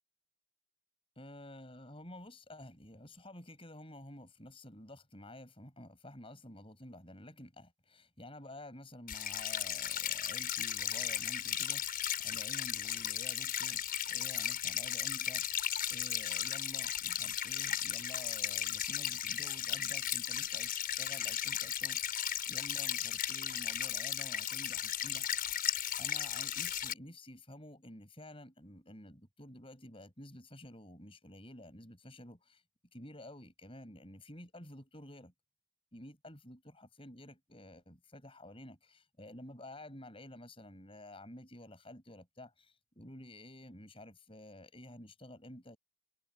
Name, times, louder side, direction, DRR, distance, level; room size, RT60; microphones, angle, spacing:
voice 1, 1.2-15.5 15.9-25.3 26.0-32.6 32.9-35.3 35.9-45.8, left 1 dB, 25° left, 7.5 m, -51 dB
sound 1, 9.1-26.9, left 10 dB, 40° left, 5.8 m, -36 dB
head